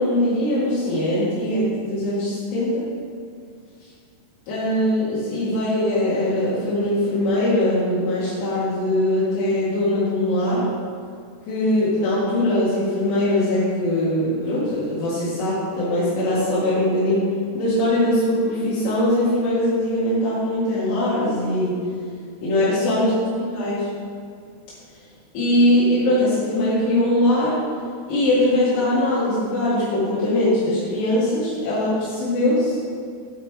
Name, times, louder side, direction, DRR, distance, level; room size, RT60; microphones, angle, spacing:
voice 1, 0.0-2.9 4.5-10.7 11.5-21.8 22.4-23.1 23.4-24.0 25.3-27.6 28.1-32.8, left 1 dB, 80° left, -11 dB, 4.2 m, -21 dB
9.8 x 5.0 x 4.6 m, 2.2 s
omnidirectional pair, 5.7 m